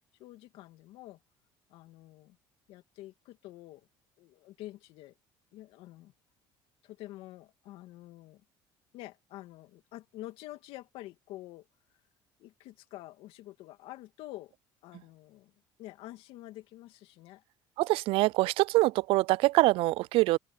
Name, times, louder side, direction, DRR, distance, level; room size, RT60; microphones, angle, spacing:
voice 1, 0.2-1.2 1.7-2.4 2.7-3.9 4.2-5.1 5.5-6.1 6.8-8.4 8.9-11.7 12.4-14.5 14.8-15.5 15.8-17.4, left 16 dB, 75° left, 2.6 m, -47 dB
voice 2, 17.8-20.4, right 19 dB, 70° right, 0.4 m, -24 dB
supercardioid pair, 100°, 10 cm